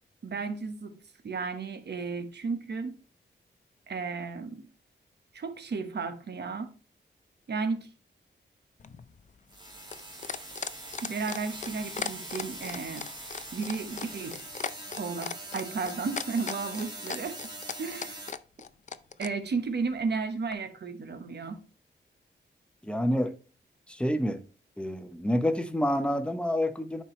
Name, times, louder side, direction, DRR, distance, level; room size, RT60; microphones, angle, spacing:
voice 1, 0.2-1.0 1.2-3.0 3.9-4.6 5.3-6.7 7.5-7.9 11.0-13.0 13.5-14.5 15.0-17.4 17.8-18.2 19.2-21.6, right 4 dB, 60° right, 1.1 m, -33 dB
sound 1, 8.8-19.3 20.5-20.6, left 6 dB, 40° left, 0.4 m, -36 dB
sound 2, 9.5-18.3, right 1 dB, 20° right, 2.0 m, -42 dB
voice 2, 22.8-23.3 23.9-24.4 24.8-27.0, equal, 5° left, 0.7 m, -28 dB
10.5 x 4.6 x 3.1 m
wide cardioid pair, 135°, 20 cm